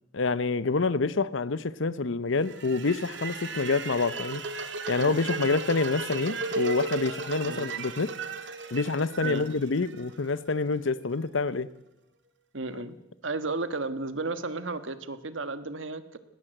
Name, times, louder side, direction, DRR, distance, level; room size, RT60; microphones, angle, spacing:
voice 1, 0.1-4.4 4.9-8.1 8.7-11.7, left 3 dB, 85° left, 16 dB, 0.8 m, -27 dB
sound 1, 2.4-10.5, right 3 dB, 65° right, 2.0 m, -35 dB
voice 2, 12.5-13.0 13.2-16.2, right 3 dB, 85° right, 11 dB, 1.4 m, -33 dB
19.5 x 18.5 x 7.9 m, 0.90 s
head